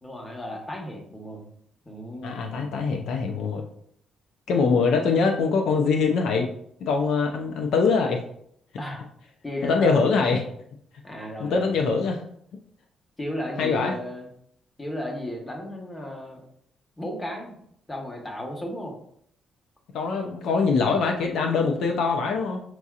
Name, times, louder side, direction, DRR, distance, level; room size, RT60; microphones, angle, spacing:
voice 1, 0.0-1.5 1.8-2.7 8.8-9.0 9.4-10.0 11.0-11.7 13.2-14.3 14.8-16.4 17.0-17.6 17.9-18.9, left 1 dB, 20° left, 1 dB, 1.1 m, -34 dB
voice 2, 2.2-3.6 4.5-6.5 6.8-8.2 9.6-10.4 11.4-12.2 13.6-13.9 19.9-22.6, left 4 dB, 80° left, 2 dB, 0.5 m, -23 dB
5.9 x 2.7 x 2.4 m, 0.69 s
cardioid pair, 90°, 0 cm